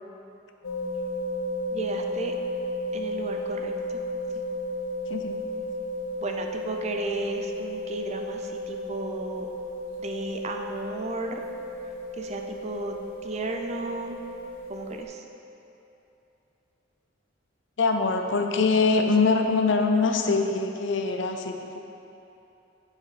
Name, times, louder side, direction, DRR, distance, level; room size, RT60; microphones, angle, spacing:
sound 1, 0.6-15.0, left 1 dB, 85° left, 1.1 m, -34 dB
voice 1, 1.7-2.3 2.9-4.0 6.2-9.5 10.0-11.4 12.2-12.9 13.2-14.2 14.7-15.2, right 2 dB, 35° right, 3 dB, 0.5 m, -34 dB
voice 2, 17.8-21.8, left 4 dB, 70° left, 5 dB, 0.6 m, -23 dB
7.3 x 5.7 x 5.0 m, 2.9 s
head